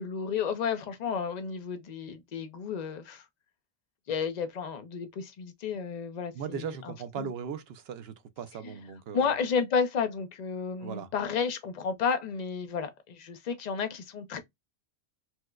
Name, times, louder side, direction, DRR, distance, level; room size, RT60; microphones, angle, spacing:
voice 1, 0.0-3.2 4.1-7.3 8.6-8.7 9.1-14.4, left 6 dB, 50° left, 0.6 m, -32 dB
voice 2, 6.3-9.3 10.8-11.1, right 7 dB, 70° right, 0.8 m, -38 dB
4.3 x 2.1 x 2.3 m
omnidirectional pair, 1.1 m